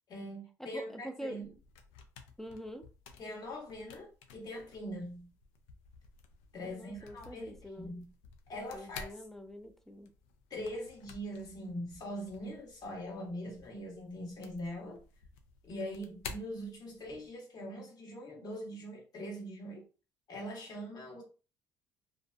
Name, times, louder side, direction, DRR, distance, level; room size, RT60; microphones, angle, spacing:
voice 1, 0.1-1.5 3.2-5.3 6.5-8.1 8.5-9.1 10.5-15.0 15.6-19.8 20.3-21.2, equal, 50° left, 1.3 m, -42 dB
voice 2, 0.6-1.4 2.4-2.9 6.6-7.9 8.7-10.1, equal, 5° left, 0.4 m, -45 dB
sound 1, 1.3-17.3, left 5 dB, 80° left, 0.4 m, -53 dB
2.5 x 2.4 x 2.2 m
hypercardioid pair, 70°, 9 cm